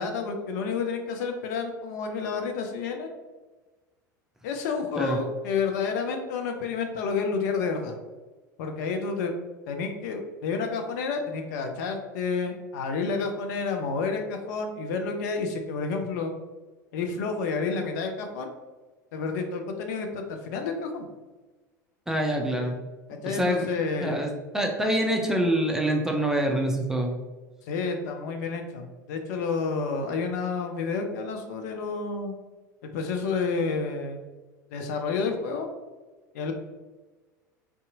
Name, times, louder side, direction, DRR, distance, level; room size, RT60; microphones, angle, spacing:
voice 1, 0.0-3.1 4.4-7.9 8.6-9.3 9.7-16.3 16.9-18.5 19.1-21.1 23.1-24.2 27.6-32.3 32.8-34.2 34.7-35.7 36.3-36.5, left 4 dB, 60° left, 4 dB, 0.4 m, -30 dB
voice 2, 22.1-22.8 23.3-23.7 24.0-27.1, right 1 dB, 5° right, 1 dB, 0.4 m, -26 dB
2.6 x 2.3 x 2.6 m, 1.2 s
figure-of-eight pair, 80°, 10 cm